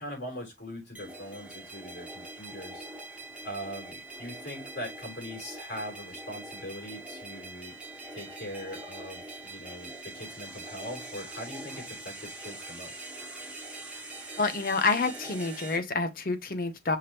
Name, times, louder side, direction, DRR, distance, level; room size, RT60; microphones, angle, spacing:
voice 1, 0.0-2.9 3.4-7.7 8.1-13.0, equal, 85° left, 2.9 m, -41 dB
sound 1, 0.9-15.8, right 2 dB, 10° right, 1.1 m, -43 dB
voice 2, 14.4-17.0, left 4 dB, 50° left, 0.7 m, -28 dB
5.7 x 3.3 x 2.8 m
head